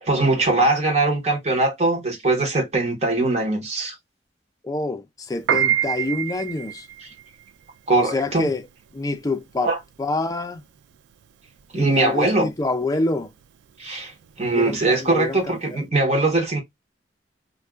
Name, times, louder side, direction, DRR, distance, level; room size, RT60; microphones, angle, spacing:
voice 1, 0.0-3.9 7.9-8.5 9.6-9.8 11.7-12.5 13.8-14.1 14.4-16.6, right 2 dB, 35° right, 1.1 m, -21 dB
voice 2, 4.6-6.9 8.0-8.7 8.9-9.7 10.0-10.6 11.7-13.3 14.5-15.8, left 2 dB, 20° left, 0.4 m, -27 dB
Piano, 5.3-15.7, right 10 dB, 80° right, 0.3 m, -29 dB
2.6 x 2.3 x 3.4 m
head